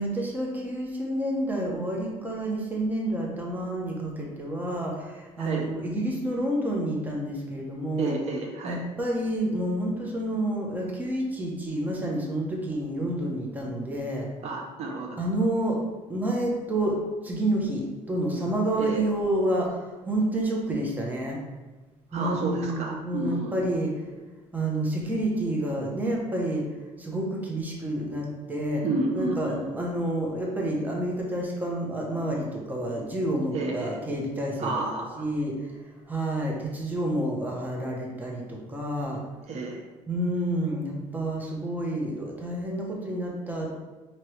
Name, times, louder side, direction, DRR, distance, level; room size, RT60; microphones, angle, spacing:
voice 1, 0.0-8.1 8.6-14.3 15.2-15.8 16.1-21.4 22.1-24.1 24.5-26.6 27.0-28.8 29.2-34.8 35.2-35.7 36.1-39.2 40.1-43.8, right 1 dB, 10° right, -2 dB, 0.8 m, -29 dB
voice 2, 5.4-5.7 8.0-8.9 14.4-15.2 18.8-19.0 22.1-23.7 28.8-29.7 33.5-34.0 34.6-35.2 39.5-39.8, right 2 dB, 55° right, 1 dB, 0.6 m, -31 dB
4.5 x 2.9 x 3.2 m, 1.2 s
cardioid pair, 130°, 14 cm